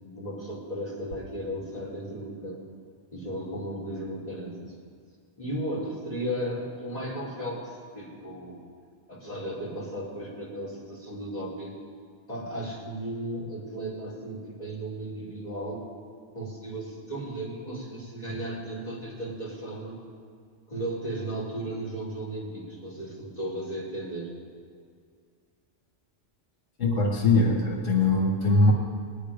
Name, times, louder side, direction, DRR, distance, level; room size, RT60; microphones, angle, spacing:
voice 1, 0.0-2.7 3.1-4.7 5.4-8.6 9.1-11.7 12.3-15.9 16.3-20.0 20.7-24.3, right 1 dB, 30° left, -7 dB, 3.7 m, -35 dB
voice 2, 26.8-28.7, left 2 dB, 90° left, 0 dB, 1.9 m, -21 dB
20.5 x 9.5 x 5.1 m, 2.1 s
omnidirectional pair, 1.2 m